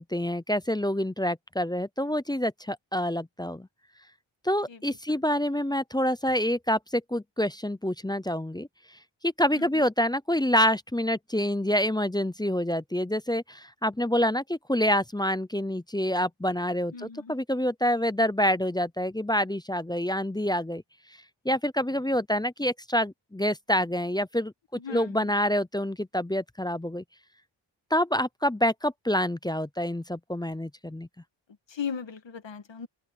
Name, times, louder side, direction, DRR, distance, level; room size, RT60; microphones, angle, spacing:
voice 1, 0.0-3.7 4.4-8.7 9.2-20.8 21.4-27.0 27.9-31.1, equal, 10° left, 0.5 m, -27 dB
voice 2, 9.5-9.9 16.9-17.3 24.8-25.3 31.7-32.9, left 6 dB, 65° left, 1.7 m, -37 dB
open air
wide cardioid pair, 115°, 49 cm